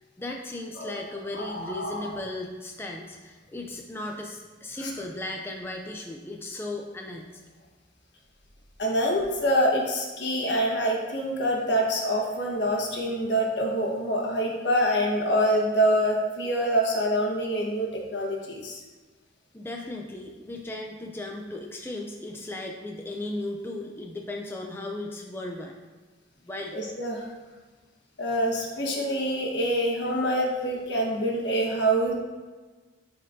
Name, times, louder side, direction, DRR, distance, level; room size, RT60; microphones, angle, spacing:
voice 1, 0.2-7.3 19.5-25.7 26.5-26.8, left 2 dB, 10° left, 1 dB, 0.4 m, -36 dB
voice 2, 1.3-2.2 4.8-4.9 8.8-18.8 26.7-27.3 28.2-32.1, equal, 65° left, -1 dB, 1.3 m, -26 dB
11.0 x 4.3 x 2.7 m, 1.3 s
head